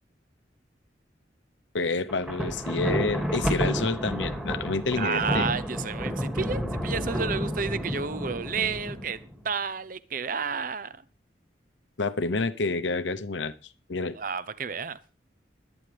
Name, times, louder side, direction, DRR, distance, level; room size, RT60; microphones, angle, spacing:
voice 1, 1.7-5.5 12.0-13.5 13.9-14.2, left 3 dB, 85° left, 0.8 m, -28 dB
Thunder, 2.1-9.3, equal, 5° right, 2.2 m, -30 dB
voice 2, 5.0-9.2 9.4-10.9 14.1-15.0, right 5 dB, 50° right, 0.7 m, -31 dB
20.5 x 9.1 x 3.4 m
head